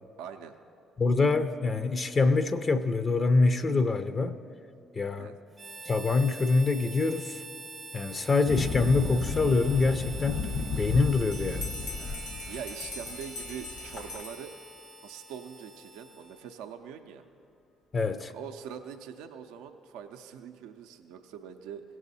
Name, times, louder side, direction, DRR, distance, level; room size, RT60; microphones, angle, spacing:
voice 1, 0.2-0.6 5.2-5.3 12.5-14.5 15.0-17.2 18.3-21.8, right 8 dB, 75° right, 6 dB, 0.4 m, -43 dB
voice 2, 1.0-4.4 4.9-5.3 5.9-7.4 7.9-10.4 10.8-11.7 17.9-18.3, left 3 dB, 40° left, 11 dB, 0.5 m, -25 dB
Harmonica, 5.5-16.6, right 3 dB, 35° right, 0.6 m, -45 dB
sound 1, 8.5-14.2, left 4 dB, 55° left, 0.9 m, -34 dB
Bell, 11.3-14.9, left 3 dB, 80° left, 2.0 m, -43 dB
17.0 x 6.1 x 4.1 m, 2.6 s
hypercardioid pair, 50°, 0 cm